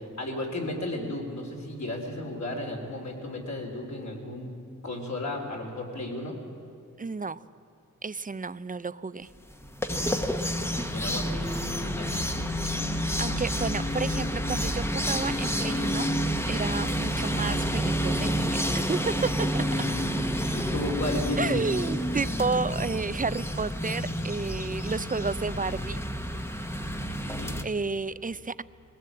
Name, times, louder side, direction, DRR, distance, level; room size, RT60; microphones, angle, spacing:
voice 1, 0.0-4.5 4.8-6.4 10.7-12.2 20.3-21.7 27.1-27.6, left 2 dB, 60° left, 0 dB, 3.7 m, -34 dB
voice 2, 7.0-7.4 8.0-9.3 13.2-16.1 16.5-18.6 18.9-19.6 21.4-26.0 26.5-26.7 27.6-28.6, right 4 dB, 25° right, 16 dB, 0.5 m, -31 dB
sound 1, 9.5-27.6, equal, 10° left, 1.0 m, -29 dB
20.5 x 17.5 x 8.6 m, 2.6 s
wide cardioid pair, 135°, 32 cm